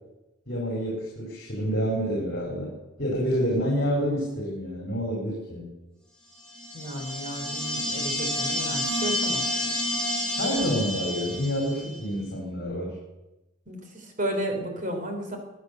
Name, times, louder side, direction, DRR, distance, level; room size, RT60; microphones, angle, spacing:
voice 1, 0.5-2.7 3.0-5.7 10.3-12.9, equal, 55° left, -2 dB, 4.6 m, -28 dB
sound 1, 6.5-11.9, left 1 dB, 5° left, 3.5 m, -29 dB
voice 2, 6.7-9.4 13.7-15.4, equal, 40° right, 3 dB, 3.7 m, -33 dB
22.5 x 9.2 x 6.8 m, 1.0 s
head